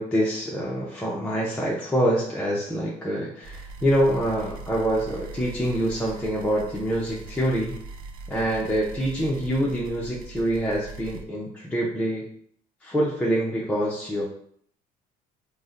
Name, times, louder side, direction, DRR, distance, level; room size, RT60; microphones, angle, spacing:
voice 1, 0.0-7.8 8.3-12.3 12.8-14.3, equal, 5° left, -5 dB, 0.5 m, -25 dB
sound 1, 3.4-11.2, right 3 dB, 65° right, 0.5 m, -41 dB
2.6 x 2.1 x 3.7 m, 0.64 s
cardioid pair, 105°, 16 cm